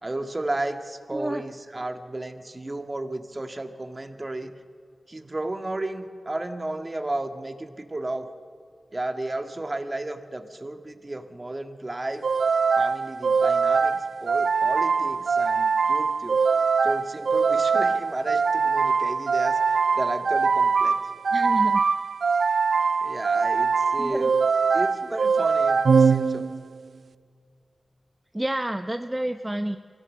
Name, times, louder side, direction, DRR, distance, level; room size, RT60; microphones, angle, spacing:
voice 1, 0.0-4.5 5.1-8.3 8.9-12.3 12.8-16.4 16.8-21.0 23.0-24.4 24.7-26.5, right 2 dB, 35° right, 7 dB, 1.8 m, -33 dB
voice 2, 1.1-1.4 21.3-21.8 24.0-24.3 28.3-29.8, right 1 dB, 20° right, 8 dB, 0.8 m, -29 dB
sound 1, 12.2-26.8, right 5 dB, 80° right, 0.5 m, -22 dB
24.0 x 16.5 x 7.4 m, 2.2 s
cardioid pair, 45°, 0 cm